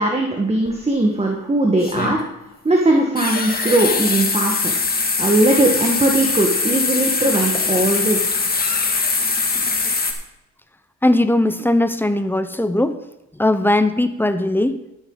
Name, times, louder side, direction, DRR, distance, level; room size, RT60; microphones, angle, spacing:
voice 1, 0.0-2.2 2.6-4.7 5.2-8.2, right 2 dB, 20° right, 1 dB, 1.7 m, -19 dB
sound 1, 0.7-0.8 1.8-2.2 3.2-10.1, left 4 dB, 30° left, 2.0 m, -22 dB
voice 2, 11.0-13.0 13.4-14.8, left 1 dB, 5° left, 10 dB, 0.9 m, -18 dB
12.0 x 10.0 x 4.0 m, 0.89 s
cardioid pair, 90°, 30 cm